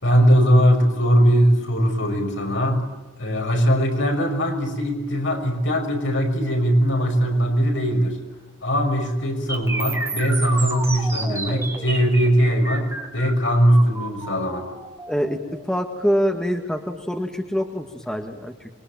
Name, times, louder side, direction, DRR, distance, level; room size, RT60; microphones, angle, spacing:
voice 1, 0.0-2.8 3.2-8.2 8.6-12.9 13.1-14.7, equal, 65° left, 3 dB, 6.1 m, -20 dB
sound 1, 9.5-17.4, right 3 dB, 15° right, 4.8 m, -32 dB
voice 2, 15.1-15.4 15.7-18.7, equal, 5° left, 4 dB, 1.8 m, -25 dB
27.0 x 23.0 x 8.9 m, 1.1 s
head